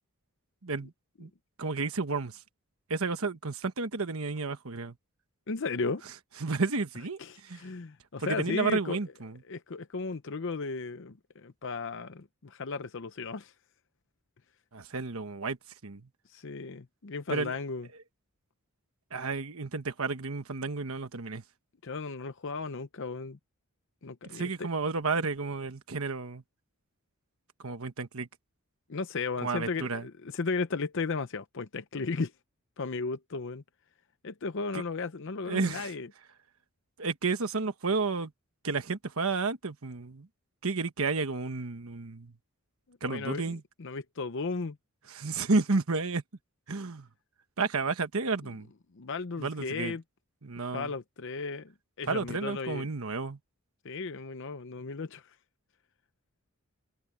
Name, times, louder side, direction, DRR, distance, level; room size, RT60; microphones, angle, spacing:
voice 1, 1.6-2.4 2.9-4.9 6.4-7.7 8.2-9.4 14.7-15.6 15.8-16.1 17.3-17.6 19.1-21.4 24.2-26.4 27.6-28.3 29.4-30.1 34.7-34.8 35.4-35.9 37.0-38.3 38.6-40.3 40.6-42.3 43.0-43.6 45.1-46.2 46.7-47.1 47.6-48.7 49.4-49.9 50.4-50.9 52.1-53.4, right 4 dB, 70° right, 1.2 m, -31 dB
voice 2, 5.5-6.0 7.2-9.0 9.5-13.5 16.3-17.9 21.8-23.4 24.0-24.7 28.9-32.3 32.8-33.6 34.2-36.1 43.1-44.8 48.9-50.0 50.7-51.7 52.0-52.9 53.8-55.3, left 4 dB, 55° left, 0.7 m, -35 dB
head